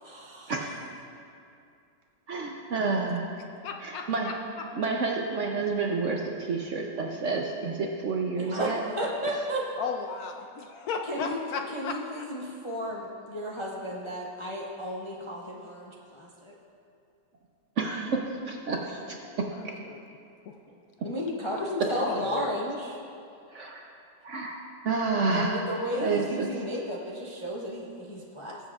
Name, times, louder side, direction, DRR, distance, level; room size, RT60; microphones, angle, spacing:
voice 1, 0.0-0.5 8.4-9.6 11.1-11.4 11.7-16.5 21.0-23.0 25.3-28.6, equal, 30° left, -4 dB, 0.5 m, -33 dB
voice 2, 2.3-3.3 3.8-4.3 4.8-8.8 17.8-18.2 18.5-19.7 23.5-23.9 24.2-25.7 26.0-26.5, right 4 dB, 60° right, 0 dB, 0.8 m, -29 dB
voice 3, 3.6-4.7 9.8-12.2 19.4-20.0 20.5-20.6 21.9-22.7, left 5 dB, 70° left, 4 dB, 0.9 m, -35 dB
19.5 x 7.4 x 2.4 m, 2.5 s
omnidirectional pair, 1.9 m